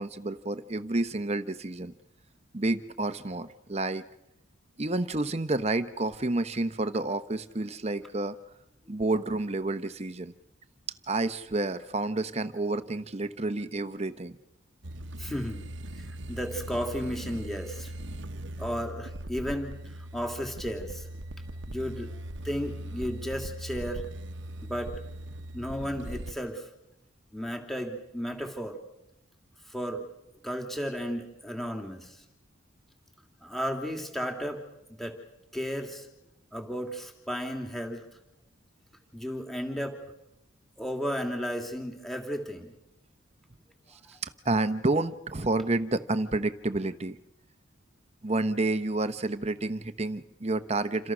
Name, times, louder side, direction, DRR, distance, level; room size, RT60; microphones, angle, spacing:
voice 1, 0.0-1.9 2.5-4.0 4.8-8.4 8.9-10.3 11.1-14.4 43.9-47.2 48.2-51.1, right 2 dB, 30° right, 11 dB, 0.9 m, -29 dB
sound 1, 14.8-26.3, right 1 dB, 60° right, 1.1 m, -40 dB
voice 2, 15.2-15.6 16.0-17.9 18.6-19.8 20.1-21.1 21.7-22.1 22.4-24.0 24.6-24.9 25.5-26.6 27.3-28.8 29.7-30.0 30.4-32.2 33.4-34.6 35.0-35.2 35.5-36.1 36.5-38.0 39.1-40.0 40.8-42.7, equal, ahead, 3 dB, 2.9 m, -34 dB
28.5 x 27.0 x 6.2 m, 0.87 s
head